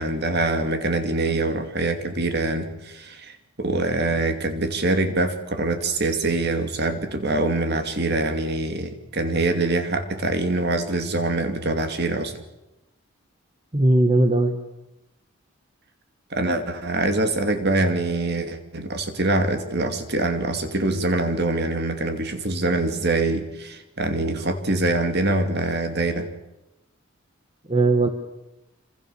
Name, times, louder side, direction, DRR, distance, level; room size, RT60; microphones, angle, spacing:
voice 1, 0.0-12.3 16.3-26.3, right 2 dB, 50° right, 7 dB, 2.6 m, -24 dB
voice 2, 13.7-14.6 27.7-28.1, right 2 dB, 30° right, 6 dB, 1.6 m, -18 dB
26.5 x 26.5 x 7.1 m, 0.94 s
head